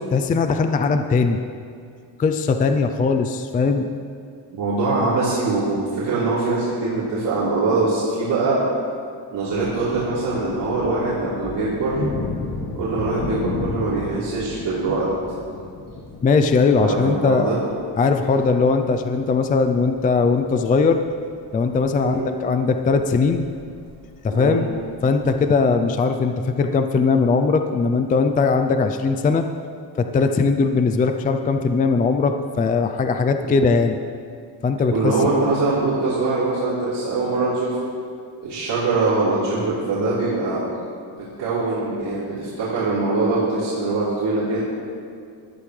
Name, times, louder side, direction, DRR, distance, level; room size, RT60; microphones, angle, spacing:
voice 1, 0.0-1.4 2.2-3.9 16.2-17.5 18.0-21.0 21.5-23.5 24.2-24.7 25.0-29.4 30.0-34.0 34.6-35.3, left 4 dB, 20° left, 7 dB, 0.3 m, -19 dB
voice 2, 4.5-8.6 9.3-12.0 12.8-15.1 16.8-17.6 22.0-22.2 24.3-24.6 33.4-33.5 34.9-37.8 38.4-40.6 41.2-44.6, right 3 dB, 65° right, -10 dB, 3.5 m, -23 dB
sound 1, 9.5-25.5, left 3 dB, 40° left, 1.6 m, -34 dB
18.5 x 12.0 x 3.2 m, 2.3 s
cardioid pair, 160°, 44 cm